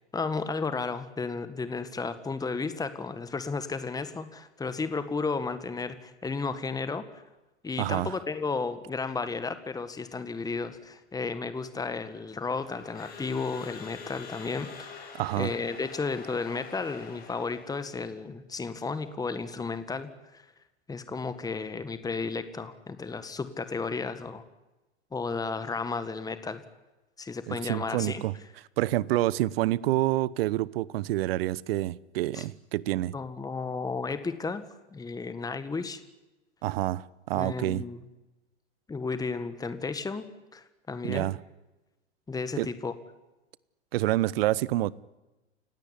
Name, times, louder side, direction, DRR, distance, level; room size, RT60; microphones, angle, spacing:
voice 1, 0.1-7.0 7.6-15.1 15.4-20.4 20.9-24.4 25.1-26.6 27.2-28.2 32.3-32.4 33.1-34.6 34.9-36.0 37.4-38.0 38.9-40.3 40.5-41.3 42.3-42.9, left 4 dB, 10° left, 1.7 m, -33 dB
voice 2, 7.8-8.2 15.1-15.5 27.5-28.3 28.8-33.2 36.6-37.9 41.0-41.4 42.6-42.7 43.9-44.9, right 16 dB, 60° right, 1.0 m, -28 dB
Crowd / Alarm, 12.4-17.9, left 5 dB, 25° left, 7.7 m, -46 dB
29.5 x 17.0 x 9.9 m
hypercardioid pair, 95°, 34 cm